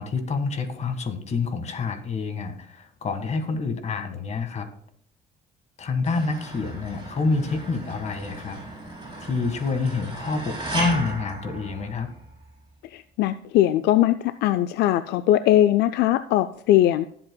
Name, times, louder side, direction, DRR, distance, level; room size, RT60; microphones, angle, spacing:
voice 1, 0.0-4.7 5.8-8.6 9.2-12.1, left 4 dB, 40° left, 7 dB, 1.7 m, -27 dB
sound 1, 6.0-12.3, right 1 dB, 25° right, 5.0 m, -35 dB
voice 2, 12.9-17.0, left 13 dB, 75° left, 12 dB, 0.4 m, -20 dB
20.0 x 7.8 x 2.3 m, 0.64 s
cardioid pair, 110°, 17 cm